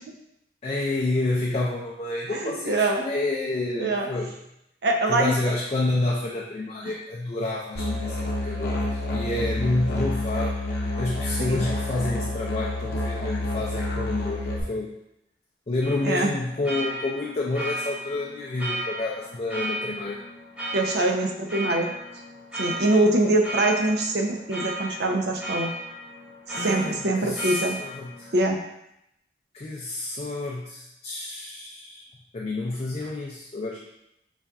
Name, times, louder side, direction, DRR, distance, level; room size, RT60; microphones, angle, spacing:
voice 1, 0.6-4.4 5.1-10.6 11.0-14.9 15.7-20.2 26.5-28.3 29.5-32.1 32.3-33.8, left 2 dB, 35° left, -3 dB, 0.4 m, -29 dB
voice 2, 2.3-3.0 3.8-4.1 4.8-5.3 11.4-11.6 16.0-16.3 20.7-21.9 22.5-25.7 26.6-27.8 28.3-28.6, right 2 dB, 65° right, 2 dB, 0.5 m, -23 dB
Musical instrument, 7.7-14.6, left 2 dB, 65° left, 0.7 m, -28 dB
sound 1, 15.8-28.4, right 1 dB, 5° right, 0.7 m, -35 dB
4.1 x 2.4 x 3.4 m, 0.82 s
head